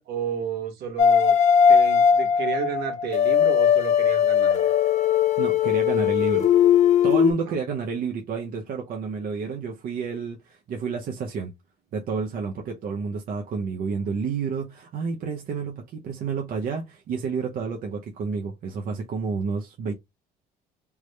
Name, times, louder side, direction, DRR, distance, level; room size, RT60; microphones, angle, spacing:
voice 1, 0.0-1.3 1.7-4.7 7.5-7.6, right 7 dB, 75° right, 1.3 m, -32 dB
sound 1, 1.0-7.3, left 8 dB, 45° left, 0.5 m, -19 dB
voice 2, 5.4-6.5 7.0-11.5 11.9-19.9, right 5 dB, 55° right, 0.8 m, -30 dB
3.5 x 2.1 x 3.1 m
cardioid pair, 110°, 17 cm